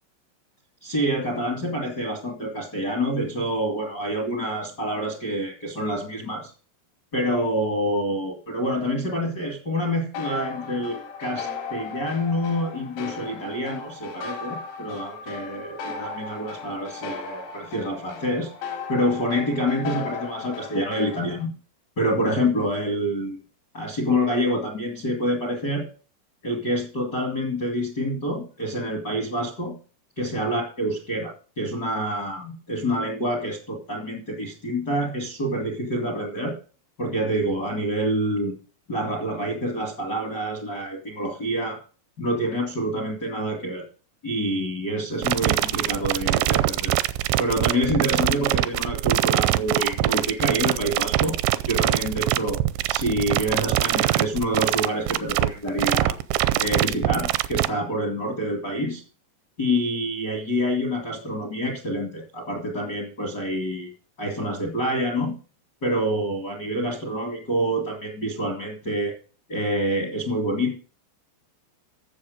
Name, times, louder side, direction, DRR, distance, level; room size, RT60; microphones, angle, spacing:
voice 1, 0.8-6.5 7.1-18.5 18.9-21.5 22.0-23.4 23.7-25.9 26.4-29.8 30.2-36.6 37.0-38.5 38.9-41.8 42.2-43.8 44.2-47.0 47.4-51.4 51.6-52.6 52.9-56.2 56.6-59.0 59.6-63.9 64.2-65.3 65.8-69.1 69.5-70.8, equal, 70° left, -1 dB, 0.9 m, -27 dB
sound 1, 10.1-21.4, left 5 dB, 85° left, 4.9 m, -36 dB
sound 2, 45.2-57.7, right 15 dB, 85° right, 2.6 m, -23 dB
15.0 x 6.8 x 5.1 m, 0.39 s
omnidirectional pair, 5.9 m